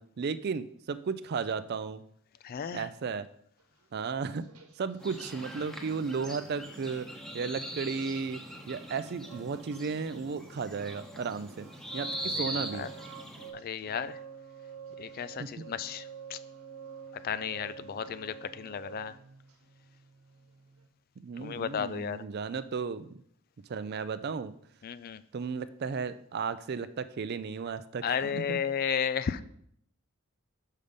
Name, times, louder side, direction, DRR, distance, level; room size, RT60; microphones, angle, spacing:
voice 1, 0.0-2.0 2.7-3.3 3.9-4.4 4.8-7.1 7.3-8.4 8.7-11.7 11.9-12.9 15.4-15.5 21.2-23.2 23.7-24.5 25.3-28.6, right 5 dB, 50° right, 14 dB, 0.4 m, -34 dB
voice 2, 2.4-2.9 12.3-12.4 12.7-12.9 13.5-14.2 15.0-16.4 17.2-19.2 21.4-22.2 24.8-25.2 28.0-29.4, left 7 dB, 45° left, 14 dB, 0.3 m, -33 dB
sound 1, 3.6-5.3 5.8-7.2 7.9-9.9 10.1-20.9, right 7 dB, 90° right, 1.1 m, -49 dB
sound 2, 5.0-13.5, right 1 dB, ahead, 0.9 m, -41 dB
6.4 x 5.5 x 5.2 m, 0.67 s
head